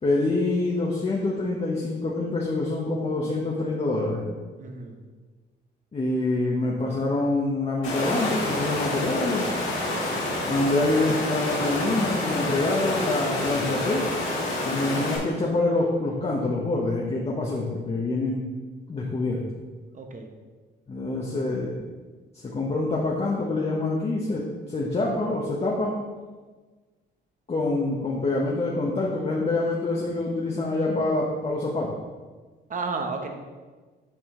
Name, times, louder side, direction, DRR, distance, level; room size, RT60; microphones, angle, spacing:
voice 1, 0.0-4.2 5.9-9.5 10.4-14.1 14.6-18.5 18.9-19.4 20.9-21.7 22.4-25.9 27.5-32.0, left 2 dB, 30° left, -3 dB, 1.0 m, -26 dB
voice 2, 4.6-4.9 19.9-20.3 32.7-33.3, right 4 dB, 40° right, 4 dB, 1.0 m, -32 dB
Water, 7.8-15.2, left 2 dB, 90° left, 1.9 m, -28 dB
7.3 x 4.9 x 3.7 m, 1.4 s
cardioid pair, 90°, 20 cm